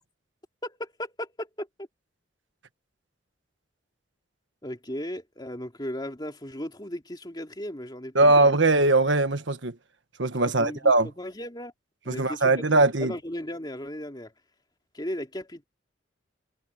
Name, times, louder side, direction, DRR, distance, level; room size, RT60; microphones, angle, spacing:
voice 1, 0.6-1.9 4.6-8.6 10.6-11.7 12.0-14.3 14.9-15.6, left 1 dB, 25° left, 2.7 m, -36 dB
voice 2, 8.1-9.7 10.2-11.1 12.1-13.2, right 2 dB, 75° right, 1.4 m, -21 dB
head